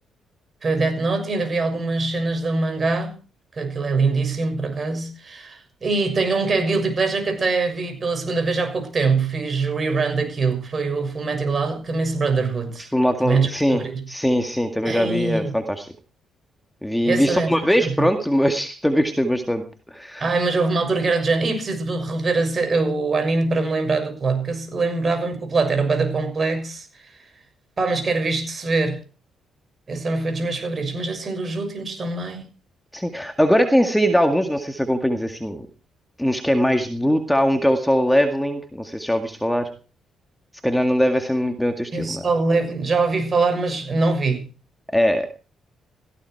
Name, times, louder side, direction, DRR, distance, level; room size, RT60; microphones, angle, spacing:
voice 1, 0.6-3.2 3.5-12.9 13.2-14.0 14.8-15.5 17.0-17.5 18.0-18.1 20.2-27.1 27.8-29.0 29.9-32.5 41.9-44.5, right 3 dB, 40° right, 6.7 m, -23 dB
voice 2, 12.9-15.9 16.8-19.6 19.9-20.3 32.9-35.7 36.2-39.7 40.6-42.2 44.9-45.3, equal, 5° left, 1.9 m, -21 dB
17.5 x 15.0 x 4.7 m
cardioid pair, 90°, 0 cm